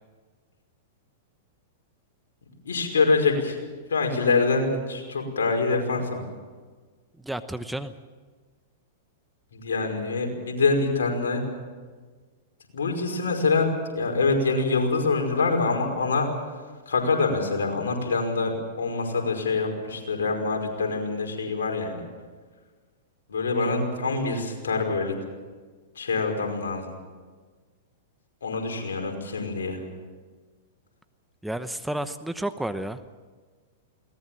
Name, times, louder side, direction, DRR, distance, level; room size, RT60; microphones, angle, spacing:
voice 1, 2.7-3.6 3.9-6.3 9.5-11.4 12.7-13.7 14.0-16.3 16.9-22.0 23.3-25.1 26.0-26.9 28.4-29.8, left 4 dB, 80° left, 2 dB, 5.3 m, -25 dB
voice 2, 7.2-7.9 31.4-33.0, right 1 dB, 5° right, 11 dB, 1.0 m, -31 dB
22.0 x 19.0 x 7.6 m, 1.4 s
hypercardioid pair, 110°, 0 cm